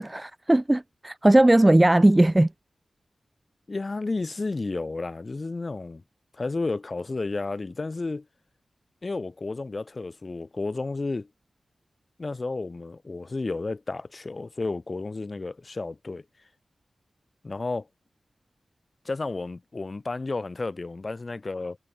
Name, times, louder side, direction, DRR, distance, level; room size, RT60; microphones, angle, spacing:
voice 1, 0.0-2.5, right 1 dB, 15° right, 5.8 m, -18 dB
voice 2, 3.7-6.0 6.3-8.2 9.0-11.3 12.2-16.2 17.4-17.9 19.0-21.8, left 3 dB, 35° left, 6.3 m, -32 dB
wide cardioid pair, 110°, 0 cm